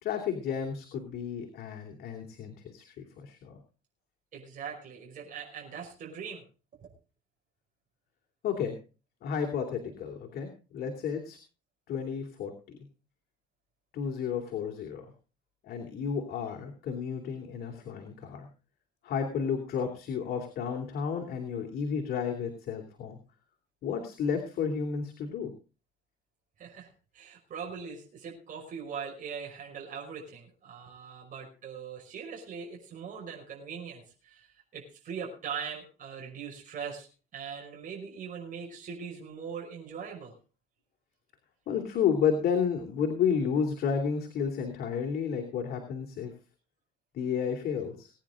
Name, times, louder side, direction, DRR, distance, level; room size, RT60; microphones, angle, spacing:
voice 1, 0.0-3.6 8.4-8.8 9.2-11.4 11.9-12.5 13.9-15.1 15.6-18.5 19.0-23.2 23.8-25.5 41.7-46.3 47.1-48.1, left 7 dB, 65° left, 3 dB, 3.0 m, -32 dB
voice 2, 4.3-6.4 6.8-6.9 26.6-34.5 34.7-37.1 37.3-40.3, right 6 dB, 50° right, -1 dB, 5.7 m, -41 dB
21.5 x 10.0 x 3.8 m, 0.35 s
cardioid pair, 110°, 17 cm